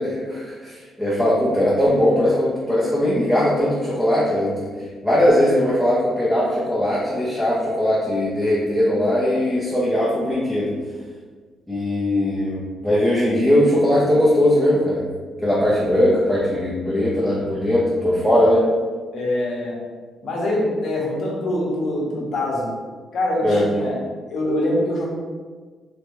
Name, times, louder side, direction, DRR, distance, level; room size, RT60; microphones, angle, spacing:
voice 1, 0.0-4.7 5.0-10.7 11.7-15.0 15.4-18.7 23.4-23.7, left 1 dB, ahead, -8 dB, 0.7 m, -19 dB
voice 2, 19.1-19.8 20.2-22.7 23.1-24.0 24.3-25.0, left 1 dB, 65° left, -3 dB, 0.9 m, -24 dB
3.2 x 2.3 x 3.0 m, 1.5 s
cardioid pair, 95°, 0 cm